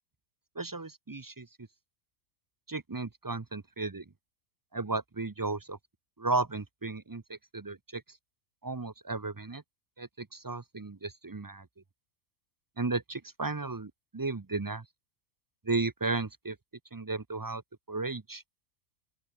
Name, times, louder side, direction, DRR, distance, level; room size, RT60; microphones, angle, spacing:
voice 1, 0.6-1.5 2.7-4.0 4.7-5.8 6.2-8.0 8.6-9.6 10.0-11.7 12.8-14.8 15.6-16.6 16.9-17.6 17.9-18.4, right 3 dB, 25° right, 0.4 m, -34 dB
open air
omnidirectional pair, 1.4 m